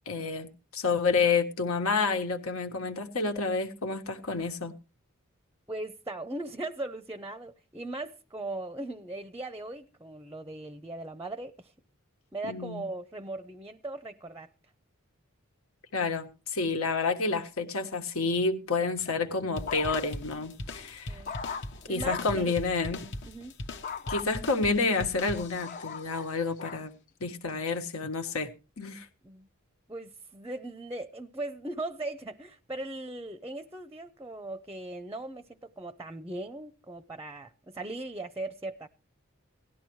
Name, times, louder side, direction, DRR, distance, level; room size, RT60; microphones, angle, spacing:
voice 1, 0.0-4.7 12.4-12.8 15.9-21.2 21.9-23.0 24.1-26.9 27.2-28.5 28.8-29.1, left 4 dB, 85° left, 1.6 m, -29 dB
voice 2, 5.7-11.7 12.3-14.5 21.1-21.4 21.9-22.5 23.2-23.5 29.2-29.5 29.9-38.9, right 2 dB, 15° right, 0.6 m, -39 dB
sound 1, 19.0-20.3 20.8-22.5 23.8-24.3 24.9-26.9 27.5-27.9, left 6 dB, 40° left, 0.6 m, -40 dB
sound 2, 19.6-25.9, left 1 dB, 55° left, 1.0 m, -40 dB
18.0 x 12.5 x 3.1 m
head